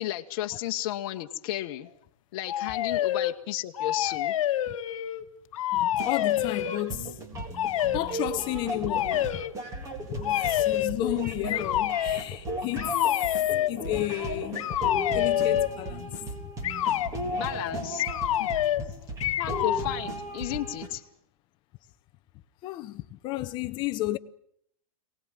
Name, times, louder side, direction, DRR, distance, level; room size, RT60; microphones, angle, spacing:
voice 1, 0.0-1.9 2.3-4.4 17.3-18.0 18.4-18.5 19.4-21.0, left 14 dB, 40° left, 1.4 m, -33 dB
sound 1, 2.5-3.4 3.7-5.2 5.5-6.8 7.5-8.0 8.9-9.5 10.2-11.0 11.5-12.2 12.8-13.7 14.6-15.8 16.6-17.1 18.0-18.9 19.2-19.9, left 12 dB, 70° left, 1.4 m, -27 dB
voice 2, 5.7-7.5 7.9-9.4 10.0-13.0 13.5-14.7 15.1-16.2 17.7-18.0 18.5-18.9 19.2-19.4 22.6-24.2, left 16 dB, 25° left, 0.9 m, -33 dB
sound 2, 6.0-20.9, right 1 dB, 15° right, 3.7 m, -36 dB
23.5 x 19.0 x 9.1 m
supercardioid pair, 165°, 18 cm